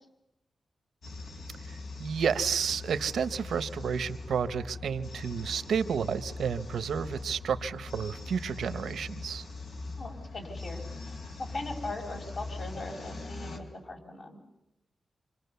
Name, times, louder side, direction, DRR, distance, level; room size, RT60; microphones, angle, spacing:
sound 1, 1.0-13.6, left 3 dB, 85° left, 4.2 m, -41 dB
voice 1, 1.7-9.4, right 7 dB, 90° right, 12 dB, 0.9 m, -31 dB
voice 2, 10.0-14.4, left 2 dB, 60° left, 1 dB, 5.5 m, -40 dB
27.5 x 26.0 x 6.9 m, 0.93 s
cardioid pair, 70°, 0 cm